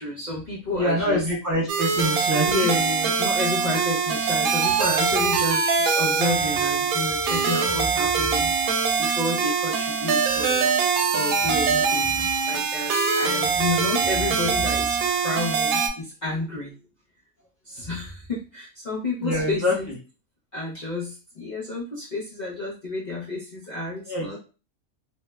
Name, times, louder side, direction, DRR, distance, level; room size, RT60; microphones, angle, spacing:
voice 1, 0.0-1.2 2.5-8.5 9.0-10.7 11.1-16.7 17.6-19.9 20.5-24.4, left 2 dB, 75° left, -5 dB, 0.4 m, -30 dB
voice 2, 0.7-2.7 19.2-19.9 24.1-24.4, left 1 dB, 15° right, -6 dB, 0.7 m, -25 dB
sound 1, 1.7-15.9, right 5 dB, 75° right, 1.0 m, -23 dB
3.0 x 2.0 x 2.2 m, 0.33 s
omnidirectional pair, 1.5 m